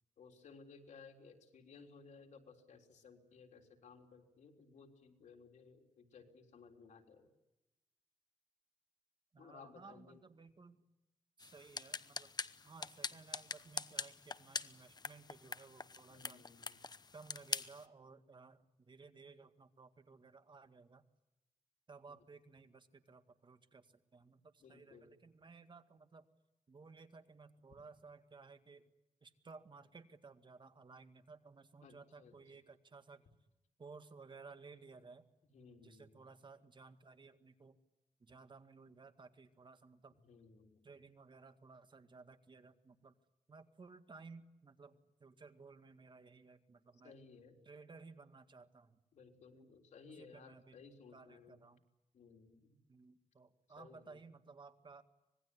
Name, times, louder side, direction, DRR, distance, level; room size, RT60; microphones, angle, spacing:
voice 1, 0.2-7.3 9.4-10.2 16.1-16.8 22.1-22.2 24.6-25.1 31.8-32.3 35.5-36.2 40.2-40.9 47.0-47.6 49.1-51.6 52.1-52.8 53.8-54.2, left 5 dB, 90° left, 3 dB, 3.6 m, -59 dB
voice 2, 9.3-10.9 11.4-12.3 12.6-16.4 17.1-21.0 21.9-26.3 26.7-28.8 29.2-33.3 33.8-35.2 35.8-37.8 38.2-40.1 40.8-43.1 43.5-47.1 47.6-49.0 49.5-49.7 50.2-50.8 51.1-51.8 52.9-55.0, right 4 dB, 40° right, 9 dB, 2.0 m, -57 dB
sound 1, 11.4-17.8, left 4 dB, 35° left, 0.9 m, -44 dB
25.5 x 20.5 x 9.8 m, 0.95 s
wide cardioid pair, 105°, 12 cm